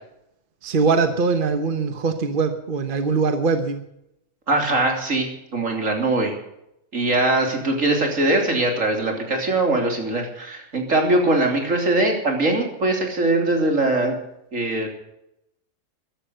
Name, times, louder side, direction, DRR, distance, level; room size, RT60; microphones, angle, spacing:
voice 1, 0.6-3.8, right 4 dB, 40° right, 8 dB, 1.2 m, -22 dB
voice 2, 4.5-6.3 6.9-14.2 14.5-14.9, right 2 dB, 75° right, 2 dB, 3.5 m, -21 dB
14.5 x 11.5 x 6.8 m, 0.81 s
omnidirectional pair, 1.4 m